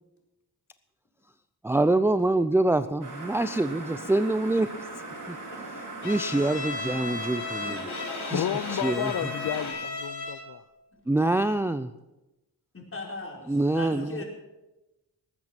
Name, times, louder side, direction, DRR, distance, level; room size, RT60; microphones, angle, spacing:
voice 1, 1.6-4.7 5.3-5.4 6.0-7.9 8.2-9.1 11.1-11.9 13.5-14.2, right 2 dB, 5° right, 11 dB, 0.5 m, -25 dB
sound 1, 3.0-9.7, right 2 dB, 50° right, 4.5 m, -39 dB
voice 2, 5.1-5.6 7.6-8.1 12.7-14.2, left 2 dB, 35° left, 0 dB, 4.4 m, -40 dB
Bowed string instrument, 6.0-10.6, left 3 dB, 80° left, 2.2 m, -35 dB
voice 3, 8.3-10.6, left 10 dB, 60° left, 12 dB, 0.6 m, -31 dB
19.5 x 8.6 x 5.9 m, 1.0 s
cardioid pair, 80°, 39 cm